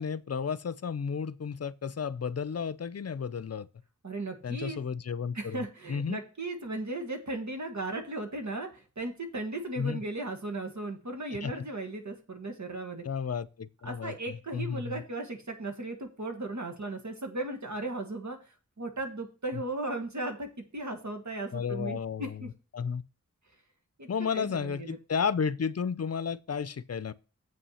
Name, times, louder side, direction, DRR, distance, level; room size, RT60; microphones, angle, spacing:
voice 1, 0.0-3.7 4.4-6.2 9.8-10.0 11.4-11.7 13.0-15.0 21.5-22.5 22.7-23.0 24.1-27.1, left 6 dB, 55° left, 0.5 m, -33 dB
voice 2, 4.0-4.8 5.3-13.0 13.8-18.4 18.8-22.5 24.0-24.1 24.3-25.0, right 2 dB, 65° right, 1.8 m, -36 dB
7.8 x 5.6 x 5.6 m
wide cardioid pair, 50°, 31 cm